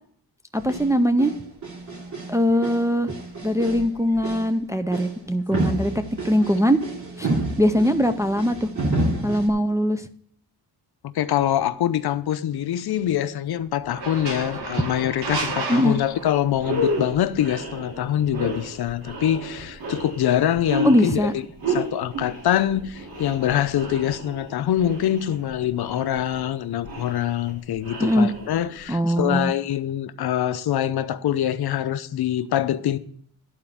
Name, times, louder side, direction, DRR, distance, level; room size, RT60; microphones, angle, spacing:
voice 1, 0.5-1.3 2.3-3.1 3.4-5.9 6.2-6.8 7.2-7.3 7.6-8.7 9.2-10.1 15.7-16.0 20.8-21.3 28.0-28.3 28.9-29.5, equal, 10° right, 0.4 m, -21 dB
sound 1, 0.5-0.9 1.2-2.4 2.6-3.9 4.2-4.5 4.9-5.2 5.5-9.5, right 2 dB, 45° right, 2.9 m, -29 dB
voice 2, 11.0-21.4 21.7-33.0, left 11 dB, 70° left, 0.7 m, -24 dB
sound 2, 11.3-11.5 13.8-16.7, right 3 dB, 90° right, 2.0 m, -32 dB
sound 3, 16.0-16.2 16.5-28.9, equal, 60° right, 2.6 m, -32 dB
11.5 x 4.4 x 7.2 m
wide cardioid pair, 145°, 40 cm